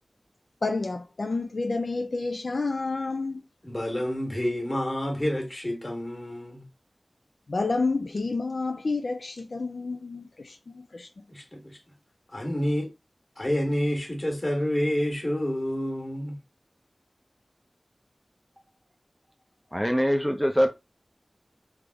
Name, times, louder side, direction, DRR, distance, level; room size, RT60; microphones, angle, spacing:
voice 1, 0.6-3.4 7.5-11.1, left 3 dB, 80° left, 0.3 m, -29 dB
voice 2, 3.6-6.6 11.3-11.8 12.3-12.9 13.4-16.4, equal, 35° left, 1.3 m, -28 dB
voice 3, 19.7-20.7, equal, ahead, 0.4 m, -23 dB
3.4 x 2.0 x 3.4 m
wide cardioid pair, 65°, 0 cm